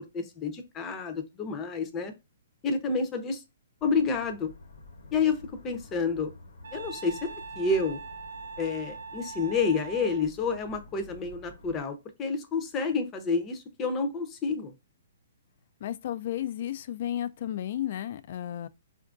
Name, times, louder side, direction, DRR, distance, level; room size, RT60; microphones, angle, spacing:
voice 1, 0.1-2.1 2.6-3.4 3.8-4.5 5.1-6.3 6.7-8.0 8.6-14.7, left 4 dB, 20° left, 0.6 m, -29 dB
sound 1, 3.8-11.8, left 2 dB, 75° left, 0.9 m, -50 dB
Wind instrument woodwind instrument, 6.6-10.3, right 5 dB, 70° right, 0.3 m, -42 dB
voice 2, 15.8-18.7, left 11 dB, 55° left, 0.3 m, -33 dB
4.2 x 2.5 x 2.4 m
hypercardioid pair, 130°, 0 cm